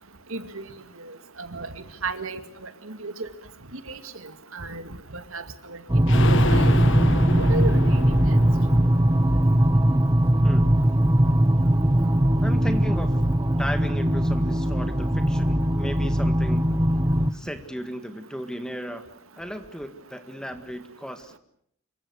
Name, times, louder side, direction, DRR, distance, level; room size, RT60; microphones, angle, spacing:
voice 1, 0.3-0.6 1.0-1.1 1.4-1.7 2.0-3.3 3.7-4.0 4.5-4.8 5.3-5.8 6.5-6.7 7.4-8.4, right 3 dB, 65° right, 9 dB, 2.3 m, -33 dB
sound 1, 5.9-17.3, right 1 dB, 20° right, 1.0 m, -20 dB
sound 2, 6.1-11.7 12.0-12.1 12.4-12.5, left 1 dB, 55° left, 1.6 m, -30 dB
voice 2, 10.4-10.7 12.4-13.1 13.5-16.6 17.3-19.1 19.4-21.4, equal, 5° left, 8 dB, 1.8 m, -35 dB
27.0 x 24.0 x 6.5 m, 0.67 s
head